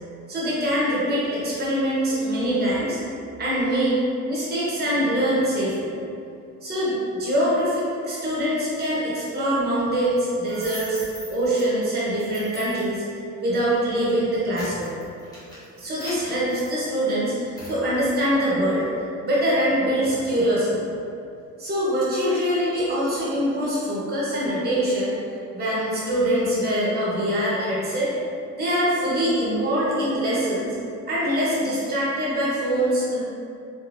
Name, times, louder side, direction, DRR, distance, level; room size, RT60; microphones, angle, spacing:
voice 1, 0.3-3.0 3.4-4.0 4.3-5.9 6.6-11.0 11.3-13.0 13.4-14.9 15.8-18.8 19.2-20.9 21.6-25.1 25.5-28.1 28.5-30.7 31.1-33.2, equal, 30° right, -8 dB, 1.0 m, -23 dB
sound 1, 10.4-11.6 12.2-12.9 13.6-13.8 14.2-17.1 17.6-17.8, equal, 10° left, 1.1 m, -40 dB
3.7 x 3.4 x 2.5 m, 2.6 s
cardioid pair, 175°, 31 cm